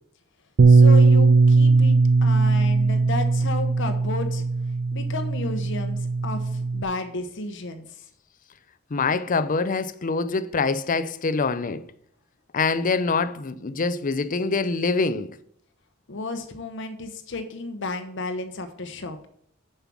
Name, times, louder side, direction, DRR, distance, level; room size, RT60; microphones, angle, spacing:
Bass guitar, 0.6-6.8, right 3 dB, 55° right, 0.5 m, -18 dB
voice 1, 0.7-4.4 4.9-8.0 16.1-19.3, left 3 dB, 65° left, 0.9 m, -33 dB
voice 2, 8.9-11.8 12.5-15.3, left 4 dB, 40° left, 0.6 m, -25 dB
7.0 x 5.6 x 6.0 m
head